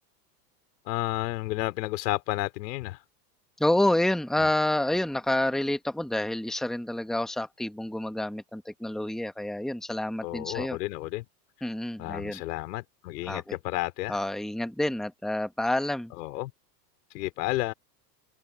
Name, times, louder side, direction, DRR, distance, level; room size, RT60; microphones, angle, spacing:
voice 1, 0.9-3.0 4.4-4.5 10.2-11.2 12.0-14.2 16.2-16.5 17.1-17.7, left 18 dB, 70° left, 4.4 m, -31 dB
voice 2, 3.6-10.8 11.6-12.4 13.3-13.6 14.1-16.1, left 1 dB, ahead, 1.8 m, -28 dB
open air
hypercardioid pair, 95°, 50 cm